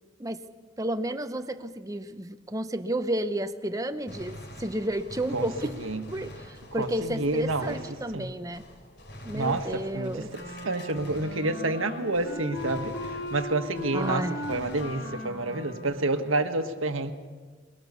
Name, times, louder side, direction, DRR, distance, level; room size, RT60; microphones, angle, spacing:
voice 1, 0.8-5.8 6.1-8.6 9.2-10.3 13.9-14.3, right 1 dB, 15° right, 9 dB, 0.8 m, -31 dB
Gunshot gunfire, 4.1-11.9 12.1-15.5, left 1 dB, 55° left, 3.6 m, -46 dB
voice 2, 6.8-7.8 8.1-8.3 9.3-17.1, right 2 dB, 85° right, 7 dB, 1.6 m, -29 dB
Wind instrument woodwind instrument, 10.3-16.2, left 1 dB, 80° left, 4.2 m, -38 dB
22.5 x 22.5 x 6.9 m, 1.5 s
head